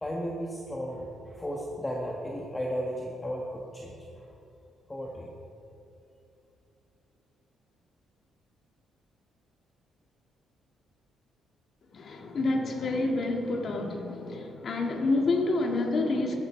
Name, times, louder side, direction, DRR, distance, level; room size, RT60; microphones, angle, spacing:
voice 1, 0.0-4.3 4.9-5.3, equal, 15° left, -2 dB, 1.6 m, -35 dB
voice 2, 11.9-16.4, left 2 dB, 50° left, 3 dB, 2.0 m, -28 dB
14.5 x 13.5 x 4.6 m, 2.8 s
cardioid pair, 90°, 0 cm